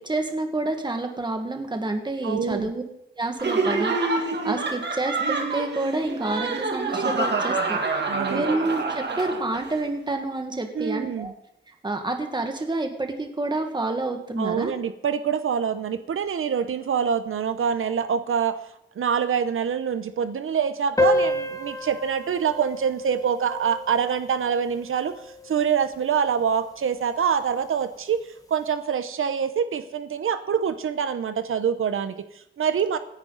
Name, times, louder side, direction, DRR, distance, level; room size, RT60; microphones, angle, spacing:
voice 1, 0.0-2.8 3.2-11.3 11.8-14.7, right 2 dB, 20° right, 4 dB, 1.8 m, -28 dB
voice 2, 2.2-2.7 8.1-8.6 10.7-11.3 14.4-18.6 19.0-33.0, right 7 dB, 90° right, 11 dB, 0.8 m, -25 dB
Laughter, 3.4-9.7, right 3 dB, 55° right, 1.8 m, -27 dB
sound 1, 21.0-26.0, left 2 dB, 15° left, 1.2 m, -29 dB
26.5 x 10.0 x 4.0 m, 0.80 s
wide cardioid pair, 165°, 21 cm